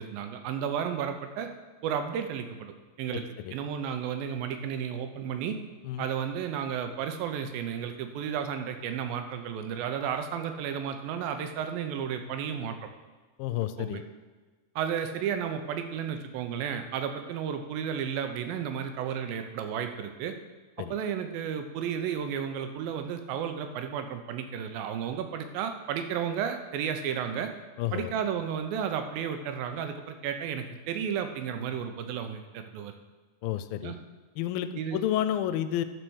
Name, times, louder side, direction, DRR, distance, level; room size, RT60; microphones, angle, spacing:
voice 1, 0.0-1.5 1.8-2.7 3.0-3.2 3.5-5.6 6.0-12.8 13.8-14.0 14.8-20.3 20.9-27.5 27.9-32.9 33.8-34.0 34.8-35.0, right 8 dB, 90° right, 7 dB, 2.6 m, -33 dB
voice 2, 13.4-14.0 20.8-21.0 27.8-28.1 33.4-33.9 34.4-35.8, left 12 dB, 90° left, 11 dB, 2.3 m, -30 dB
12.0 x 4.5 x 6.3 m, 1.3 s
omnidirectional pair, 4.0 m